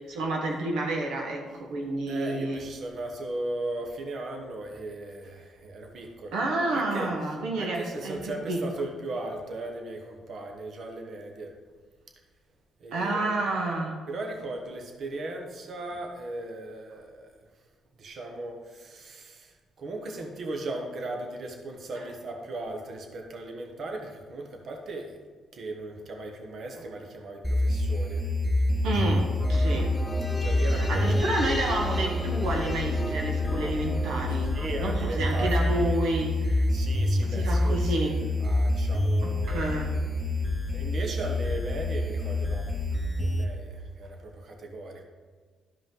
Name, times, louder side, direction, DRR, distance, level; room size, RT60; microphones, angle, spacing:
voice 1, 0.1-2.6 6.3-8.6 12.9-14.0 28.8-29.9 30.7-36.6 37.2-38.2 39.2-39.9, right 2 dB, 85° right, 0 dB, 1.2 m, -30 dB
voice 2, 2.1-6.4 6.7-7.1 7.6-11.6 12.8-13.4 14.1-17.3 18.0-25.2 25.5-28.3 28.8-29.2 30.3-31.2 34.5-36.0 36.7-39.8 40.7-42.8 43.2-45.0, right 2 dB, 55° right, 3 dB, 1.3 m, -37 dB
sound 1, 27.4-43.4, left 1 dB, ahead, 1.1 m, -27 dB
sound 2, 29.4-36.0 36.3-36.4, left 2 dB, 20° left, 0.7 m, -37 dB
12.5 x 5.1 x 3.9 m, 1.5 s
cardioid pair, 90°, 0 cm